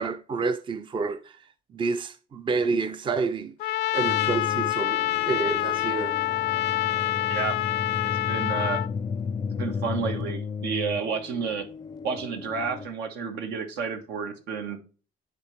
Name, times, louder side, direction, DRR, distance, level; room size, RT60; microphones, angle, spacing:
voice 1, 0.0-1.4 1.7-6.2, right 4 dB, 30° right, 0.5 m, -29 dB
Trumpet, 3.6-8.9, left 14 dB, 80° left, 0.5 m, -26 dB
sound 1, 4.1-12.9, left 5 dB, 25° left, 0.4 m, -34 dB
voice 2, 8.0-8.8 9.5-11.7 12.0-14.8, right 5 dB, 80° right, 1.5 m, -31 dB
10.0 x 4.1 x 3.2 m
cardioid pair, 110°, 17 cm